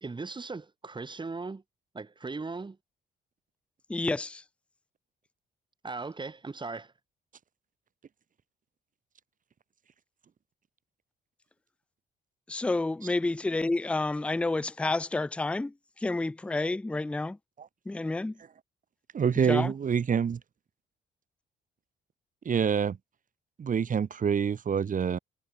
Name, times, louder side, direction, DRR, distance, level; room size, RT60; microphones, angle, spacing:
voice 1, 0.0-1.6 1.9-2.8 5.8-6.9, right 3 dB, 25° right, 2.2 m, -38 dB
voice 2, 3.9-4.4 12.5-15.7 16.0-17.4 17.9-18.3 19.5-19.7, left 2 dB, 5° left, 0.4 m, -29 dB
voice 3, 19.1-20.4 22.4-23.0 23.6-25.2, right 7 dB, 40° right, 1.3 m, -26 dB
cardioid pair, 90°, 20 cm